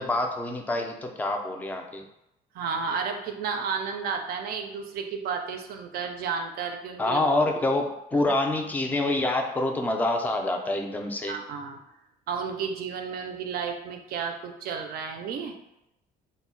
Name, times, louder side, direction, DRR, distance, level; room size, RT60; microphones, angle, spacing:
voice 1, 0.0-2.1 7.0-11.4, left 2 dB, 10° left, 3 dB, 0.3 m, -26 dB
voice 2, 2.5-7.2 11.2-11.8 12.3-15.6, right 6 dB, 65° right, 5 dB, 0.4 m, -32 dB
2.1 x 2.0 x 3.7 m, 0.85 s
cardioid pair, 110°, 17 cm